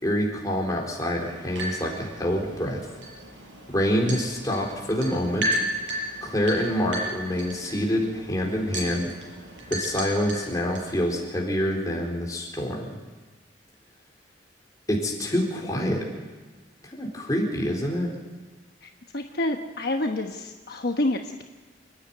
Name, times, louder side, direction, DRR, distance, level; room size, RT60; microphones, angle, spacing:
voice 1, 0.0-2.8 3.7-5.5 6.2-9.1 9.7-12.9 14.9-16.0 16.8-18.1, equal, 20° left, -2 dB, 4.2 m, -26 dB
sound 1, 1.2-10.9, right 1 dB, 90° right, 7.0 m, -34 dB
voice 2, 18.8-21.5, left 1 dB, 60° left, 4 dB, 1.1 m, -28 dB
28.5 x 10.0 x 9.6 m, 1.3 s
head